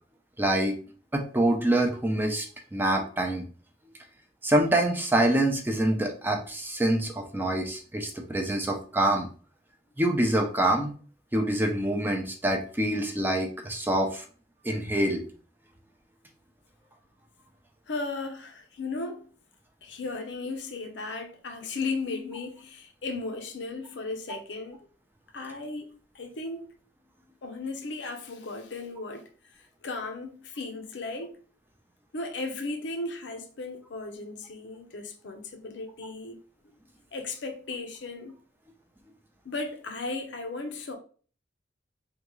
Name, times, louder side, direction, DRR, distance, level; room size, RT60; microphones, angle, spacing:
voice 1, 0.4-0.7 1.1-2.5 2.7-3.4 4.4-9.3 10.0-10.9 11.3-14.2 14.6-15.2, right 1 dB, 10° right, 0.5 m, -25 dB
voice 2, 17.9-19.3 19.8-24.8 25.3-26.6 27.4-31.3 32.1-36.4 37.1-38.3 39.4-41.0, left 3 dB, 75° left, 0.6 m, -36 dB
3.6 x 2.3 x 3.0 m
head